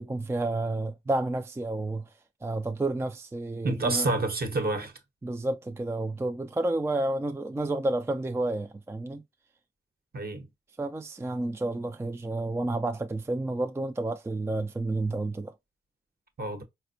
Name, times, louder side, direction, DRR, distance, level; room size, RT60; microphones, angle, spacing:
voice 1, 0.0-2.1 2.4-4.1 5.2-9.2 10.8-15.5, right 2 dB, 10° right, 0.4 m, -30 dB
voice 2, 3.6-4.9 10.1-10.5 16.4-16.6, right 2 dB, 50° right, 1.0 m, -28 dB
4.2 x 2.1 x 2.5 m
cardioid pair, 60°, 21 cm